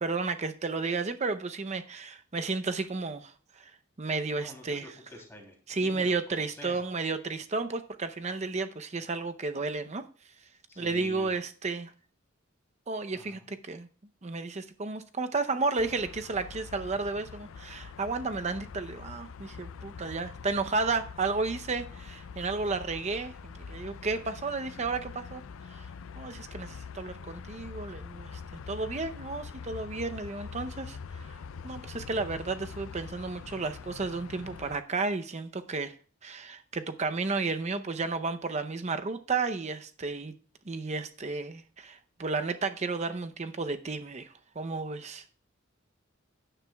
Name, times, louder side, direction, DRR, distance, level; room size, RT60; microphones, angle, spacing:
voice 1, 0.0-3.7 4.0-4.9 5.7-10.0 10.8-11.9 12.9-13.9 14.2-25.4 25.7-25.9 26.2-28.4 28.7-31.4 31.6-35.9 36.2-40.3 40.6-45.2, right 3 dB, 35° right, 0.7 m, -32 dB
voice 2, 4.4-6.8 10.7-11.3 13.1-13.5, equal, 15° left, 3.1 m, -47 dB
sound 1, 15.8-34.8, left 5 dB, 85° left, 0.4 m, -44 dB
15.5 x 10.0 x 2.3 m
head